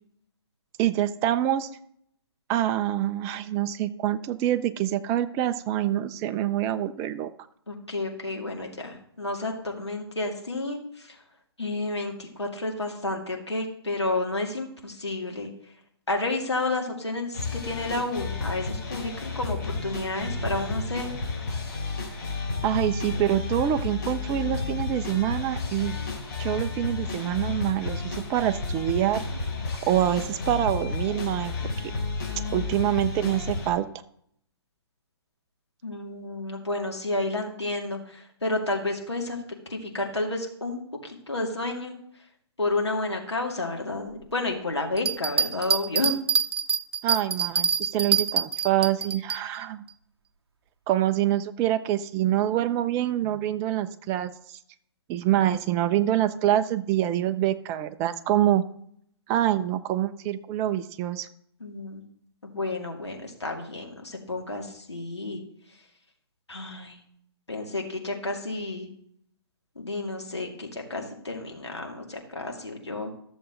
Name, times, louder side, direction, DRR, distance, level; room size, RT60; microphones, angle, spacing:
voice 1, 0.8-1.7 2.5-7.3 22.6-26.0 26.4-29.3 29.8-31.5 32.5-33.9 47.0-49.8 50.9-54.6 55.1-58.6 59.3-61.3, right 12 dB, 20° right, 11 dB, 0.5 m, -26 dB
voice 2, 7.7-11.2 11.6-15.5 16.1-21.1 35.8-39.4 39.7-41.9 42.6-46.2 61.6-62.0 62.4-65.4 66.5-67.0 67.5-68.9 69.8-73.1, left 2 dB, 80° left, 1 dB, 2.3 m, -31 dB
sound 1, 17.3-33.7, left 3 dB, 45° left, 3.5 m, -32 dB
sound 2, 45.0-49.4, right 6 dB, 65° right, 0.7 m, -25 dB
13.5 x 7.0 x 3.8 m, 0.69 s
figure-of-eight pair, 130°, 14 cm